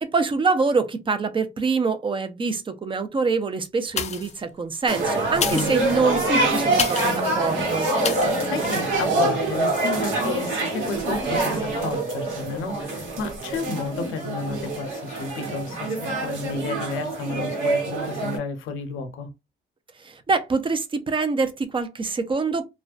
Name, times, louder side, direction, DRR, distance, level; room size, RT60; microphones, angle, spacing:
voice 1, 0.0-7.9 20.0-22.6, right 4 dB, 25° right, 0.5 m, -25 dB
sound 1, 3.9-4.4 5.3-7.2 8.0-8.4 8.9-9.0, left 7 dB, 35° left, 0.4 m, -29 dB
sound 2, 4.9-18.4, right 2 dB, 80° right, 1.2 m, -25 dB
voice 2, 8.4-19.3, left 4 dB, 85° left, 0.6 m, -32 dB
2.4 x 2.1 x 2.3 m
cardioid pair, 90°, 20 cm